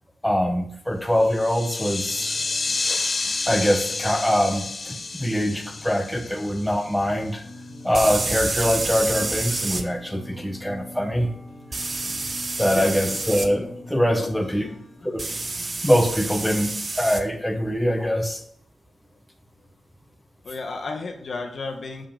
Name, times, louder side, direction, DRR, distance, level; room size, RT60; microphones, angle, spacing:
voice 1, 0.2-2.4 3.5-7.4 7.8-11.3 12.6-14.7 15.0-15.2 15.8-18.4, equal, 5° left, 3 dB, 1.0 m, -23 dB
sound 1, 1.2-7.3, left 3 dB, 40° left, 0.4 m, -30 dB
sound 2, 1.9-16.7, left 1 dB, 75° left, 2.2 m, -44 dB
sound 3, 4.5-4.6 7.9-9.8 11.7-13.5 15.2-17.2, right 3 dB, 35° right, 0.6 m, -29 dB
voice 2, 12.7-13.2 14.2-14.8 20.4-22.1, left 3 dB, 55° left, 4 dB, 1.1 m, -33 dB
6.7 x 5.6 x 3.6 m, 0.65 s
cardioid pair, 85°, 0 cm